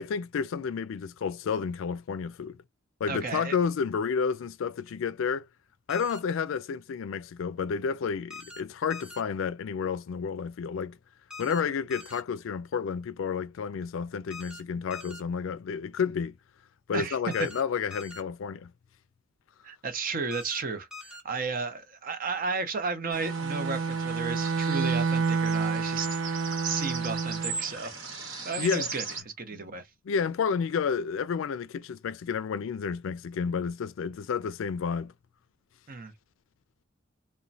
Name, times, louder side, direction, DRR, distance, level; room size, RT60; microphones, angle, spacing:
voice 1, 0.0-2.6 3.0-5.5 5.9-11.0 11.4-16.3 16.9-18.7 28.6-28.9 29.5-29.7 30.1-35.1, left 6 dB, 70° left, 0.3 m, -30 dB
voice 2, 3.1-3.5 16.9-17.2 19.6-26.2 26.6-27.9 28.4-29.0 29.4-29.8 35.9-36.1, right 4 dB, 45° right, 0.6 m, -33 dB
sound 1, 5.9-6.2 8.3-8.6 8.9-9.2 11.3-11.6 11.9-12.2 14.3-14.6 14.9-15.2 17.3-17.6 17.9-18.2 20.3-20.6 20.9-21.2, left 3 dB, 5° right, 0.6 m, -43 dB
sound 2, 23.1-29.2, right 4 dB, 70° right, 1.1 m, -39 dB
Bowed string instrument, 23.1-27.6, right 5 dB, 85° right, 0.4 m, -29 dB
3.0 x 2.1 x 2.6 m
head